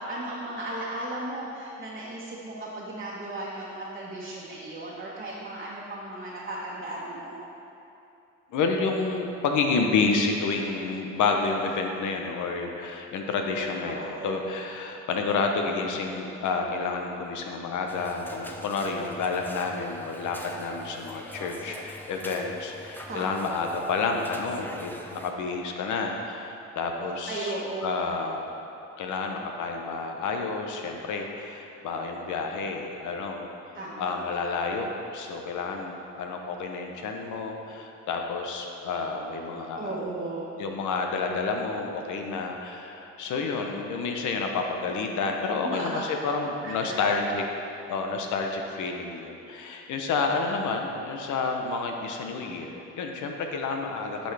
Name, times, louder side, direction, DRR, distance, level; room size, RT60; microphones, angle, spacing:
voice 1, 0.1-7.4 13.8-14.4 23.1-23.3 27.3-28.0 33.7-34.2 39.8-40.5 45.6-46.1 46.6-47.0, right 2 dB, 30° right, -7 dB, 1.3 m, -35 dB
voice 2, 8.5-27.5 27.8-28.4 29.0-33.5 34.0-40.0 40.6-47.4 47.9-54.3, left 4 dB, 75° left, 3 dB, 0.9 m, -29 dB
sound 1, 17.9-25.3, left 1 dB, 5° left, 0.6 m, -43 dB
10.0 x 5.4 x 3.4 m, 2.8 s
cardioid pair, 90°, 30 cm